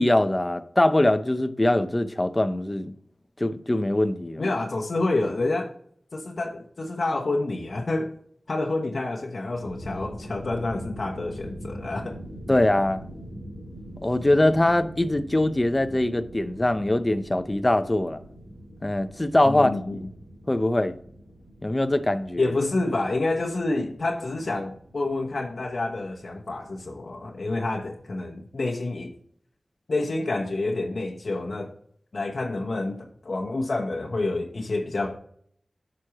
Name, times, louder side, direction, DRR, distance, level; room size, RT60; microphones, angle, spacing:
voice 1, 0.0-2.9 3.4-4.4 12.5-13.0 14.0-18.2 18.8-19.8 20.5-21.0 21.6-22.5, left 1 dB, 30° left, 0.7 m, -22 dB
voice 2, 4.4-5.7 6.1-8.1 8.5-12.2 19.4-20.0 22.4-29.1 29.9-31.7 32.1-35.2, left 2 dB, 65° left, 0.9 m, -28 dB
sound 1, 9.4-28.2, equal, 65° right, 3.7 m, -43 dB
9.4 x 6.2 x 3.0 m
cardioid pair, 45°, 0 cm